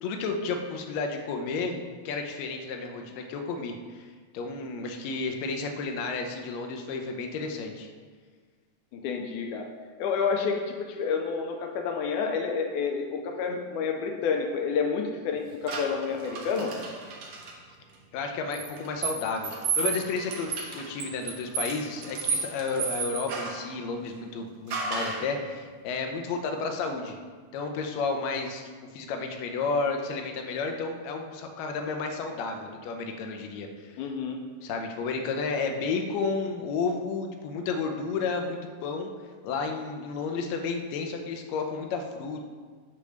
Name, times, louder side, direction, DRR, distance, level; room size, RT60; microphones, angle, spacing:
voice 1, 0.0-4.1 4.3-7.9 18.1-27.2 27.5-28.6 28.9-34.1 34.6-39.1 39.4-42.4, left 4 dB, 75° left, 4 dB, 1.8 m, -32 dB
voice 2, 8.9-9.7 10.0-16.7 34.0-34.4, left 5 dB, 90° left, 3 dB, 2.1 m, -29 dB
sound 1, 15.7-17.5 18.5-23.7 24.7-25.3, right 5 dB, 65° right, 1.8 m, -32 dB
8.3 x 3.4 x 6.4 m, 1.6 s
omnidirectional pair, 3.5 m